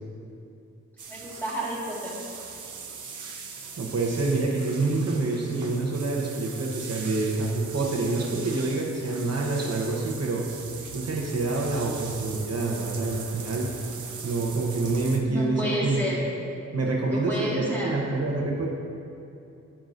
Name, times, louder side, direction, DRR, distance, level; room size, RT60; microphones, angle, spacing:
sound 1, 1.0-15.2, right 5 dB, 85° right, 0.7 m, -40 dB
voice 1, 1.1-2.2 15.2-16.2 17.1-17.9, equal, 5° left, -7 dB, 1.8 m, -30 dB
voice 2, 3.8-10.5 10.9-13.7 14.2-16.0 16.7-18.7, right 3 dB, 60° right, -2 dB, 1.0 m, -27 dB
9.2 x 8.9 x 2.6 m, 2.7 s
wide cardioid pair, 155°, 29 cm